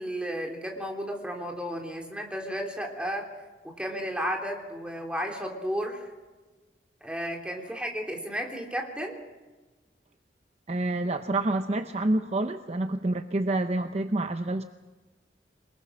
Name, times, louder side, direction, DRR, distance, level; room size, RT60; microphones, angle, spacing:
voice 1, 0.0-3.2 3.6-6.1 7.0-9.2, equal, 5° right, 2 dB, 3.4 m, -33 dB
voice 2, 10.7-14.6, right 2 dB, 35° right, 8 dB, 0.7 m, -28 dB
27.5 x 20.0 x 6.3 m, 1.2 s
head